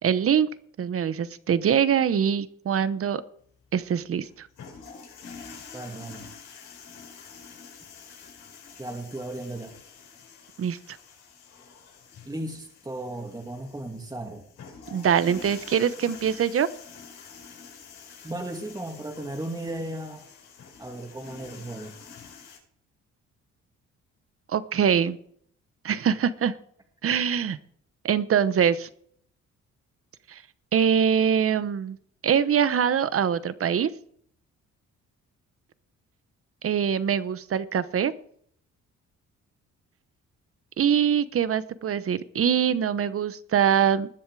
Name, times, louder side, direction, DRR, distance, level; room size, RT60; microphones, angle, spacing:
voice 1, 0.0-0.5 0.8-3.2 3.7-4.5 10.6-10.8 14.9-16.7 24.5-25.2 25.8-26.5 27.0-27.6 28.0-28.9 30.3-30.4 30.7-32.0 32.2-33.9 36.6-38.1 40.8-44.1, right 8 dB, 50° right, 15 dB, 1.0 m, -23 dB
sound 1, 3.4-22.6, left 5 dB, 80° left, 5.6 m, -47 dB
voice 2, 5.7-6.3 8.8-9.7 12.3-14.4 18.2-20.2 20.8-22.0, right 1 dB, 15° right, 2 dB, 2.5 m, -35 dB
20.0 x 7.1 x 4.9 m, 0.63 s
cardioid pair, 90°, 30 cm